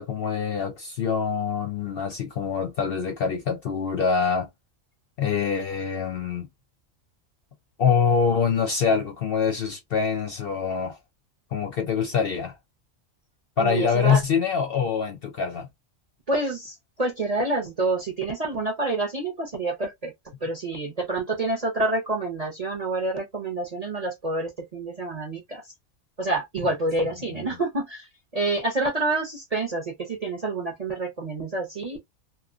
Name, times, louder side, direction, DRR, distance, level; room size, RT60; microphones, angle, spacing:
voice 1, 0.0-4.5 5.2-6.5 7.8-11.0 11.5-12.6 13.6-15.7 27.3-27.5, left 6 dB, 60° left, 0.6 m, -25 dB
voice 2, 13.6-14.2 16.3-20.1 20.4-25.6 26.2-32.0, right 2 dB, 40° right, 0.6 m, -28 dB
2.9 x 2.2 x 2.4 m
omnidirectional pair, 1.4 m